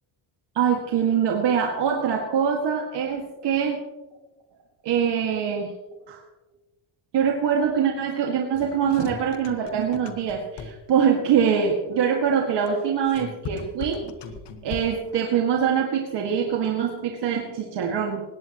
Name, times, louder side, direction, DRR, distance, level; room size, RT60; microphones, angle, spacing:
voice 1, 0.6-3.8 4.8-5.7 6.1-6.2 7.1-14.1 14.6-18.2, right 7 dB, 60° right, 1 dB, 2.1 m, -23 dB
sound 1, 8.6-11.0 12.7-15.1, left 6 dB, 60° left, 1.6 m, -39 dB
19.5 x 17.5 x 3.0 m, 1.2 s
cardioid pair, 115°, 46 cm